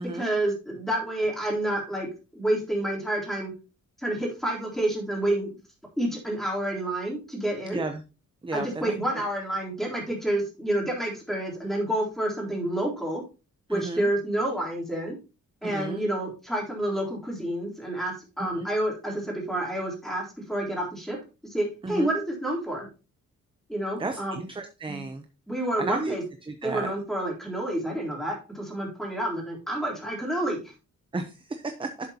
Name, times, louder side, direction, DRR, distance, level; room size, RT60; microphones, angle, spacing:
voice 1, 0.1-2.1 2.3-3.5 4.0-5.5 6.0-7.8 8.5-13.2 13.7-15.2 15.6-21.2 21.4-22.9 23.7-24.4 24.9-25.0 25.5-26.2 26.6-30.6, right 1 dB, ahead, -2 dB, 3.6 m, -29 dB
voice 2, 7.7-8.0 8.4-9.2 13.7-14.1 15.6-16.0 18.5-18.7 21.8-22.1 24.0-25.2 25.8-26.2 26.5-26.9 31.1-31.9, right 3 dB, 15° right, 7 dB, 0.7 m, -33 dB
11.0 x 7.7 x 2.9 m, 0.31 s
wide cardioid pair, 165°, 32 cm